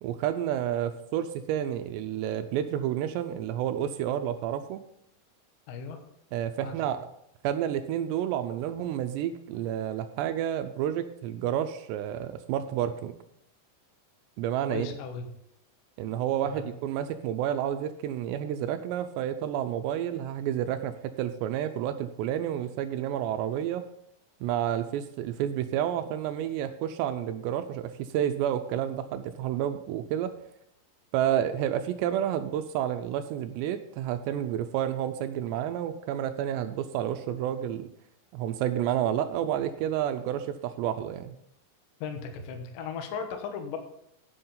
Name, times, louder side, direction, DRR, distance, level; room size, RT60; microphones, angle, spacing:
voice 1, 0.0-4.8 6.3-7.0 7.4-13.1 14.4-14.9 16.0-23.9 24.4-30.3 31.1-37.9 38.3-41.4, right 10 dB, 85° right, 9 dB, 2.6 m, -30 dB
voice 2, 5.7-6.0 6.6-7.0 8.8-8.9 14.7-15.3 16.4-16.7 42.0-43.8, left 6 dB, 70° left, 5 dB, 2.1 m, -37 dB
9.5 x 7.8 x 5.5 m, 0.74 s
omnidirectional pair, 5.2 m